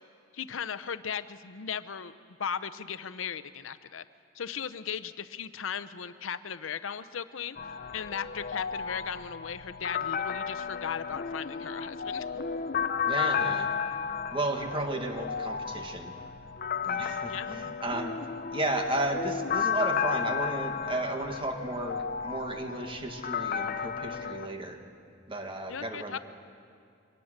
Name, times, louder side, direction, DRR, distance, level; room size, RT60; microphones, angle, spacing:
voice 1, 0.3-2.1 2.4-4.0 4.3-7.6 7.9-12.3 17.3-17.5 25.7-26.2, left 7 dB, 90° left, 14 dB, 0.7 m, -37 dB
sound 1, 7.6-24.5, left 6 dB, 45° left, 0.6 m, -33 dB
voice 2, 13.0-13.7 14.3-16.2 16.8-18.2 18.5-24.8 25.3-26.2, right 1 dB, 25° right, 4 dB, 1.7 m, -33 dB
24.0 x 19.0 x 6.6 m, 2.3 s
head